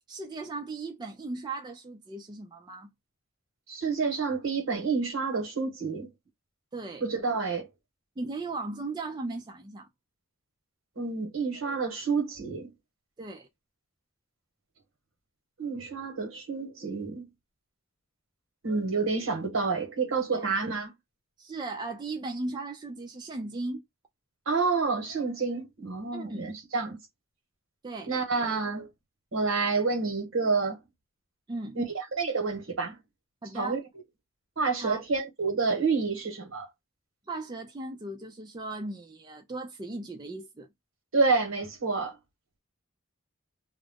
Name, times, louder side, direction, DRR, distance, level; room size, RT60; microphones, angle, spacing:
voice 1, 0.1-2.9 6.7-7.1 8.2-9.9 13.2-13.5 20.3-20.5 21.4-23.8 26.1-26.4 27.8-28.1 31.5-31.8 33.4-33.8 34.8-35.0 37.3-40.7, right 2 dB, 20° right, 0.4 m, -37 dB
voice 2, 3.7-6.1 7.0-7.7 11.0-12.7 15.6-17.3 18.6-20.9 24.5-27.0 28.1-28.9 29.3-30.8 31.8-33.0 33.5-33.8 34.6-36.7 41.1-42.1, right 4 dB, 70° right, 1.1 m, -28 dB
2.4 x 2.0 x 3.4 m
head